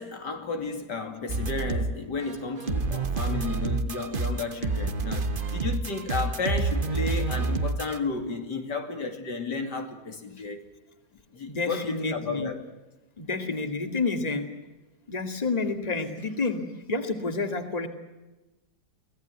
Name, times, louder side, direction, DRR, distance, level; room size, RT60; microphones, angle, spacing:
voice 1, 0.0-10.7 11.3-12.6, left 4 dB, 90° left, 3.2 m, -33 dB
sound 1, 1.3-8.0, right 3 dB, 35° right, 1.1 m, -28 dB
voice 2, 11.5-12.5 13.2-14.5 15.1-16.6 16.9-17.9, left 3 dB, 25° left, 2.3 m, -29 dB
24.0 x 18.0 x 9.4 m
omnidirectional pair, 1.8 m